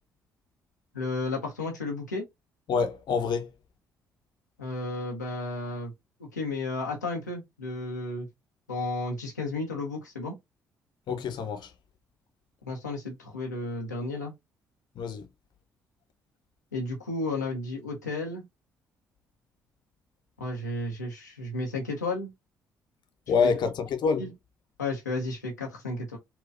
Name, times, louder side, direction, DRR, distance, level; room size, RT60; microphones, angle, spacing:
voice 1, 0.9-2.2 4.6-5.9 6.2-8.3 8.7-10.4 12.6-14.3 16.7-18.4 20.4-22.3 23.4-23.7 24.2-24.3 24.8-26.2, left 2 dB, 90° left, 0.6 m, -33 dB
voice 2, 2.7-3.5 11.1-11.7 15.0-15.2 23.3-24.2, left 5 dB, 55° left, 0.7 m, -26 dB
4.2 x 2.3 x 2.3 m
figure-of-eight pair, 45°, 9 cm